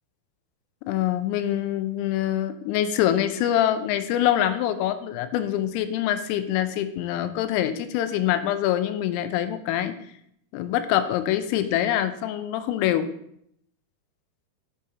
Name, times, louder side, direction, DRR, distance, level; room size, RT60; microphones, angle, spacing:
voice 1, 0.9-9.9 10.5-13.1, left 11 dB, 90° left, 10 dB, 3.3 m, -25 dB
8.1 x 5.6 x 3.7 m, 0.72 s
omnidirectional pair, 5.8 m